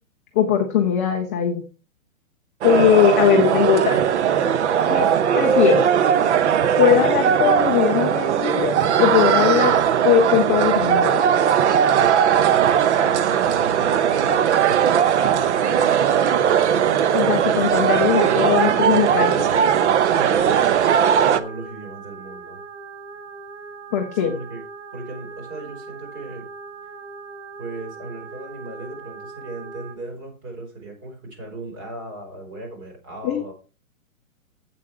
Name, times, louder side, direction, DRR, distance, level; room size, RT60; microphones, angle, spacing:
voice 1, 0.3-1.6 2.6-4.0 4.8-5.1 5.3-5.8 6.8-9.8 10.0-11.2 17.1-19.5 23.9-24.3 33.2-33.5, left 9 dB, 10° left, 2 dB, 0.4 m, -20 dB
sound 1, 2.6-21.4, right 8 dB, 55° right, 0.9 m, -18 dB
voice 2, 12.8-16.5 17.7-18.7 20.1-22.6 24.1-24.6 24.9-26.5 27.6-33.5, right 2 dB, 30° right, 2 dB, 4.8 m, -37 dB
sound 2, 13.3-30.0, right 4 dB, 80° right, 2.8 m, -40 dB
8.2 x 7.8 x 4.7 m, 0.34 s
hypercardioid pair, 140°, 41 cm